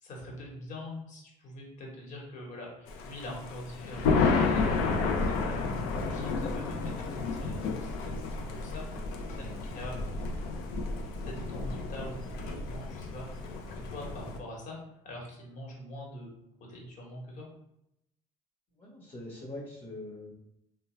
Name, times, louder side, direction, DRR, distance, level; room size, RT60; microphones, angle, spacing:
voice 1, 0.0-8.8 9.4-10.0 11.2-14.8 15.0-16.3 16.6-17.5, left 1 dB, 55° left, -1 dB, 1.2 m, -44 dB
Thunder, 2.9-14.4, left 4 dB, 80° left, 0.5 m, -31 dB
sound 1, 4.9-13.0, right 1 dB, 15° right, 0.4 m, -46 dB
voice 2, 18.8-20.3, left 2 dB, 35° left, -4 dB, 1.0 m, -43 dB
3.3 x 2.2 x 3.0 m, 0.80 s
supercardioid pair, 90°, 15 cm